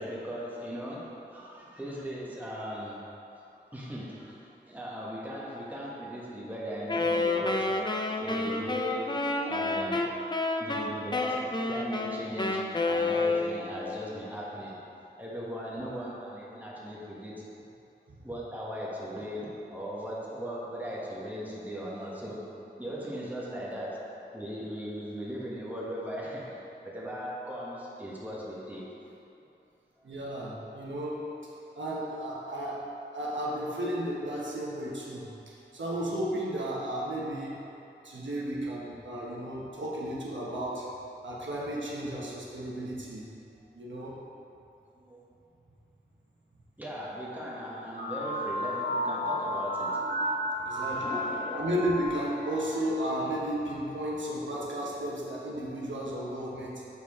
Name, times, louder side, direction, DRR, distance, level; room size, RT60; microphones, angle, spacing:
voice 1, 0.0-3.1 3.7-10.1 10.6-14.8 15.2-17.4 18.2-29.0 29.4-29.5 30.0-30.1 45.0-45.2 46.8-51.8, equal, 10° right, -6 dB, 1.3 m, -38 dB
Wind instrument woodwind instrument, 6.9-13.8, left 3 dB, 25° left, 0.4 m, -29 dB
voice 2, 30.0-31.2 31.7-32.8 33.1-35.3 35.7-37.6 38.0-40.9 41.2-43.3 43.7-44.2 50.3-51.2 51.5-56.9, right 1 dB, 85° right, -5 dB, 1.0 m, -33 dB
sound 1, 47.9-53.0, equal, 55° right, 1.2 m, -32 dB
6.9 x 4.6 x 3.6 m, 2.8 s
wide cardioid pair, 55°, 19 cm